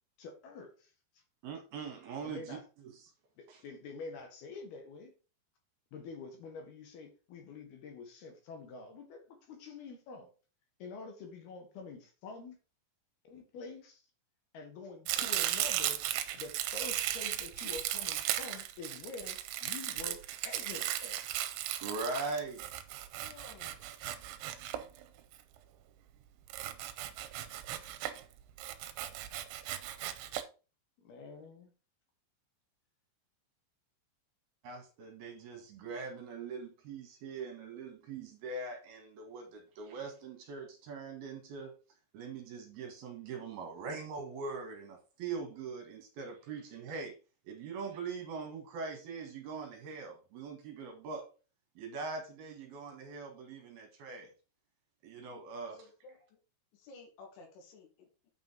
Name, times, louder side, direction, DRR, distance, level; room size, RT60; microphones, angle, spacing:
voice 1, 0.2-0.9 2.2-2.6 3.4-5.1 5.9-10.3 10.8-12.6 13.2-14.0 14.5-16.0 16.3-21.2 31.0-31.7, left 4 dB, 65° left, 3.2 m, -47 dB
voice 2, 1.4-3.0 3.5-3.6 21.8-22.6 34.6-41.7 42.1-47.1 47.4-51.2 51.8-54.3 55.0-55.8, right 4 dB, 65° right, 3.3 m, -42 dB
Domestic sounds home sounds, 15.1-25.4 26.5-28.2 28.6-30.4, right 13 dB, 85° right, 3.2 m, -36 dB
voice 3, 23.2-23.8 55.6-56.4 56.7-58.3, left 3 dB, 80° left, 4.8 m, -55 dB
9.3 x 5.3 x 5.0 m
omnidirectional pair, 5.5 m